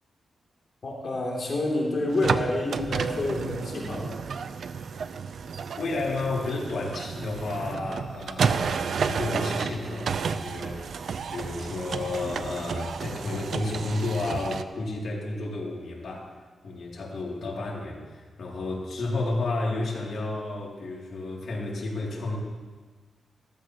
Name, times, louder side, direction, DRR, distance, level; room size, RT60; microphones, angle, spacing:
voice 1, 0.8-4.1, left 2 dB, 50° left, -3 dB, 3.0 m, -28 dB
sound 1, 2.1-14.6, right 6 dB, 70° right, 0.5 m, -31 dB
voice 2, 5.8-10.8 11.3-16.3 16.6-22.4, left 2 dB, 70° left, -3 dB, 2.8 m, -31 dB
15.0 x 14.0 x 3.0 m, 1.4 s
wide cardioid pair, 130°, 0 cm